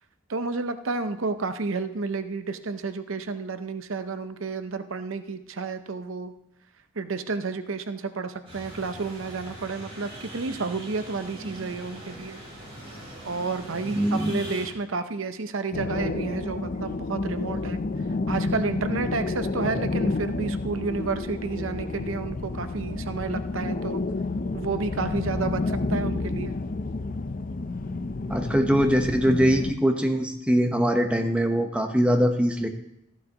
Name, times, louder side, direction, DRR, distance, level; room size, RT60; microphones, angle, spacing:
voice 1, 0.3-6.3 7.0-12.4 13.2-17.8 18.3-24.0 24.5-26.6, right 4 dB, 80° right, 10 dB, 0.7 m, -31 dB
sound 1, 8.4-14.7, right 1 dB, 30° right, 5.0 m, -40 dB
voice 2, 13.9-14.4 28.3-32.7, equal, 5° right, 4 dB, 1.0 m, -22 dB
sound 2, 15.7-29.7, left 3 dB, 45° left, 0.5 m, -30 dB
14.0 x 12.0 x 3.0 m, 0.84 s
head